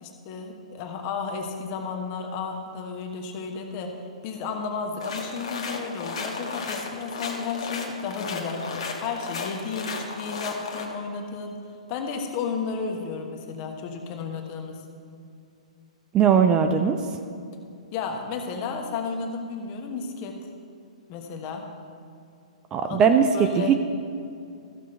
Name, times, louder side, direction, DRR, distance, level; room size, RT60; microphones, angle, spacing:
voice 1, 0.0-3.9 4.2-11.6 11.9-14.8 17.9-20.4 21.1-21.7 22.8-23.7, left 5 dB, 35° left, 3 dB, 1.2 m, -33 dB
sound 1, 5.0-10.9, left 4 dB, 55° left, 1.3 m, -34 dB
voice 2, 16.1-17.0 22.7-23.2 23.6-23.7, right 7 dB, 20° right, 6 dB, 0.4 m, -19 dB
14.5 x 6.2 x 4.4 m, 2.5 s
figure-of-eight pair, 115°, 4 cm